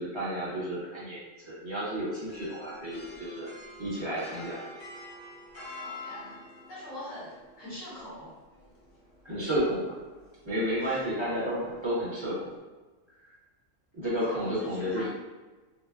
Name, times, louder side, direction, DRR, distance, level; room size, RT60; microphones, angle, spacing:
voice 1, 0.0-3.5 3.8-4.6 9.2-9.9 10.4-12.5 13.9-15.0, equal, 25° right, -9 dB, 1.0 m, -31 dB
sound 1, 2.3-12.6, left 2 dB, 45° left, 0.7 m, -48 dB
voice 2, 5.7-6.4 6.7-8.3 10.8-11.2 14.2-15.1, left 1 dB, 75° left, -10 dB, 1.5 m, -43 dB
3.4 x 2.6 x 2.4 m, 1.2 s
omnidirectional pair, 1.3 m